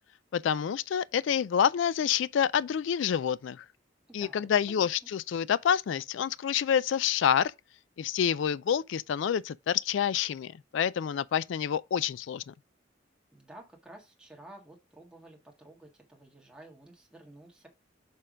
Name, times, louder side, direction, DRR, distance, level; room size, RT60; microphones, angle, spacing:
voice 1, 0.3-3.6 4.1-7.5 8.0-12.5, left 8 dB, 70° left, 0.3 m, -28 dB
voice 2, 4.1-4.5 4.8-5.1 13.3-17.7, right 1 dB, 5° right, 1.7 m, -52 dB
6.7 x 3.7 x 5.0 m
head